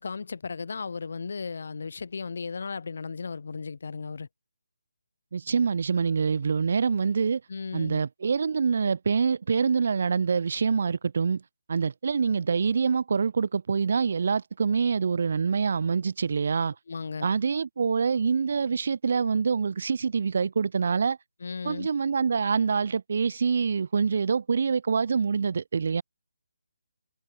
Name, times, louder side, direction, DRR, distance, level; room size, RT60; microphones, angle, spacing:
voice 1, 0.0-4.3 7.5-8.0 16.9-17.3 21.4-21.9, left 5 dB, 55° left, 1.0 m, -35 dB
voice 2, 5.3-7.4 7.7-11.4 11.7-16.7 17.2-21.2 21.6-26.0, right 5 dB, 50° right, 1.0 m, -25 dB
hypercardioid pair, 170°, 0 cm